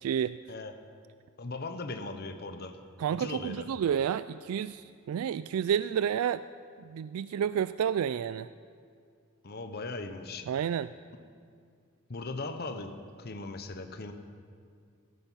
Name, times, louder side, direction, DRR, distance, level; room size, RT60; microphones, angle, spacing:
voice 1, 0.0-0.4 3.0-6.4 6.8-8.5 10.5-10.9, right 8 dB, 90° right, 15 dB, 0.3 m, -30 dB
voice 2, 1.4-2.8 3.1-3.7 9.4-10.5 12.1-14.1, left 3 dB, 50° left, 7 dB, 0.9 m, -39 dB
17.5 x 13.5 x 5.6 m, 2.2 s
head